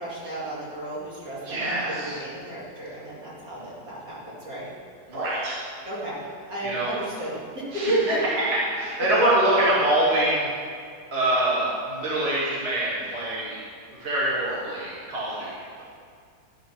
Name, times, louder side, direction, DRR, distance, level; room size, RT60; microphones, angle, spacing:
voice 1, 0.0-1.6 1.9-4.7 5.8-6.2 6.5-8.2, right 1 dB, 55° right, -8 dB, 3.0 m, -32 dB
voice 2, 1.4-2.1 5.1-5.6 6.6-6.9 7.7-7.9 8.2-10.5 11.1-13.6 13.9-15.8, right 1 dB, 35° right, -8 dB, 1.9 m, -25 dB
11.5 x 5.1 x 6.1 m, 2.3 s
omnidirectional pair, 1.9 m